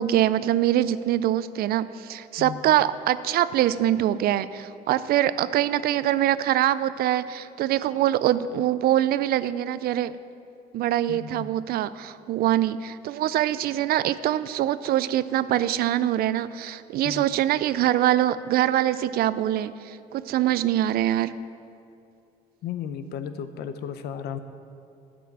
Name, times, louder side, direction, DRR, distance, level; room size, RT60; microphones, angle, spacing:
voice 1, 0.0-10.1 10.7-21.4, right 12 dB, 65° right, 15 dB, 0.4 m, -24 dB
voice 2, 11.1-11.5 17.0-17.2 22.6-24.4, left 8 dB, 75° left, 10 dB, 0.7 m, -34 dB
10.0 x 6.3 x 8.3 m, 2.5 s
cardioid pair, 110°, 17 cm